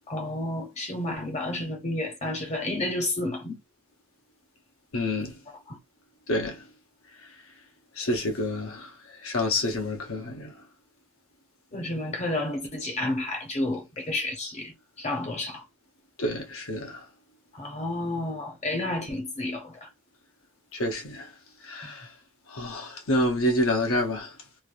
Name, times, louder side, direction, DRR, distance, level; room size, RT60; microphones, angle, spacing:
voice 1, 0.1-3.6 5.7-5.8 11.7-15.6 17.5-19.9 21.8-21.9, left 1 dB, 30° left, 0.8 m, -31 dB
voice 2, 4.9-5.3 6.3-6.6 8.0-8.9 9.2-10.5 16.2-17.0 20.7-21.3 21.6-22.1 22.5-24.3, left 1 dB, 65° left, 0.9 m, -28 dB
3.2 x 2.5 x 2.4 m
head